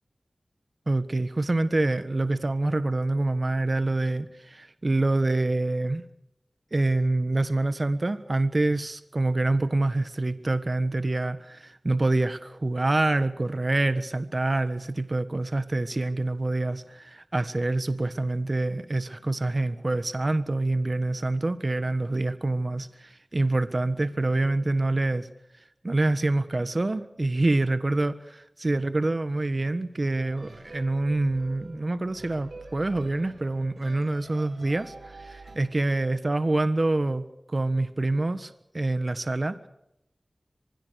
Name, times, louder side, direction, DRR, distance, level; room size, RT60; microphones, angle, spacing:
voice 1, 0.9-6.0 6.7-25.3 25.8-28.1 28.6-39.7, right 2 dB, 45° right, 1.4 m, -26 dB
sound 1, 30.2-35.6, right 3 dB, 75° right, 5.1 m, -46 dB
25.0 x 21.5 x 6.5 m
wide cardioid pair, 45°, 0 cm